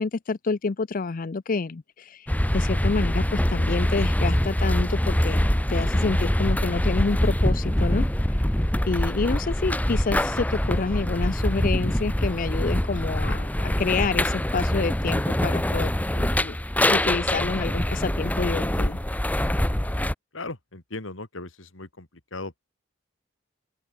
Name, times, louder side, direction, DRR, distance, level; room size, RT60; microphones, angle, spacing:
voice 1, 0.0-8.0 8.3-8.4 8.9-16.6 16.8-19.0, left 4 dB, 45° left, 0.5 m, -28 dB
sound 1, 2.3-20.1, left 1 dB, 10° left, 1.0 m, -24 dB
voice 2, 20.3-22.6, left 2 dB, 85° left, 2.9 m, -37 dB
open air
head